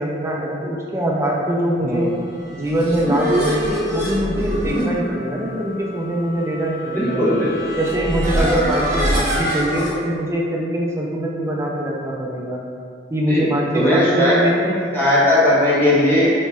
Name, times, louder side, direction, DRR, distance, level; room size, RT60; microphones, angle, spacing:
voice 1, 0.0-2.2 2.5-7.2 7.8-12.6 13.1-14.8, right 1 dB, 15° right, -2 dB, 0.4 m, -23 dB
sound 1, 2.4-9.9, equal, 45° right, 1.1 m, -24 dB
voice 2, 6.9-7.7 13.3-13.4 13.7-14.4 14.9-16.3, left 1 dB, 10° left, -10 dB, 0.9 m, -17 dB
4.2 x 2.9 x 2.2 m, 2.3 s
head